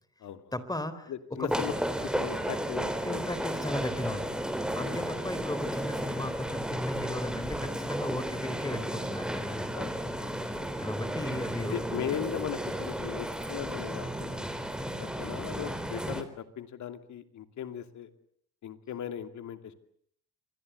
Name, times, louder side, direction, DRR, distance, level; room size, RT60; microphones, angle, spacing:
voice 1, 0.5-1.1 1.4-1.5 3.0-4.3 4.7-9.8 10.8-11.7, left 1 dB, 15° left, 14 dB, 4.0 m, -36 dB
voice 2, 1.1-1.7 2.0-3.2 4.8-5.0 9.8-10.3 11.7-14.5 15.0-18.1 18.6-19.7, left 9 dB, 75° left, 9 dB, 2.8 m, -38 dB
sound 1, 1.5-16.2, right 1 dB, 5° right, 3.9 m, -33 dB
27.0 x 22.5 x 8.1 m, 0.64 s
cardioid pair, 90°, 30 cm